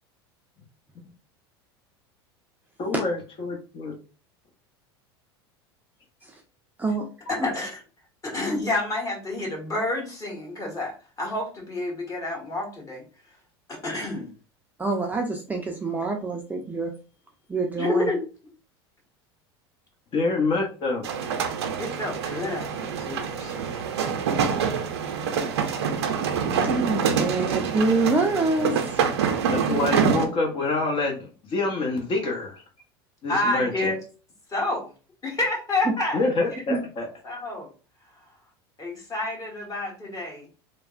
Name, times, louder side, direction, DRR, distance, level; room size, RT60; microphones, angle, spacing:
voice 1, 2.8-4.0 20.1-21.1 29.5-32.6 33.2-33.9 36.1-37.1, left 3 dB, 40° left, 1 dB, 0.8 m, -26 dB
voice 2, 7.3-7.8 8.2-10.9 11.2-13.0 13.7-14.3 17.8-18.2 21.8-23.8 33.3-34.0 34.5-34.9 35.2-36.3 37.2-37.7 38.8-40.5, left 2 dB, 25° left, -1 dB, 1.3 m, -29 dB
voice 3, 14.8-16.9 17.5-18.1 26.6-29.0 36.7-36.8, right 3 dB, 10° right, 1 dB, 0.5 m, -26 dB
sound 1, 21.0-30.3, right 6 dB, 85° right, 0.5 m, -26 dB
3.2 x 2.0 x 2.4 m, 0.36 s
hypercardioid pair, 95°, 13 cm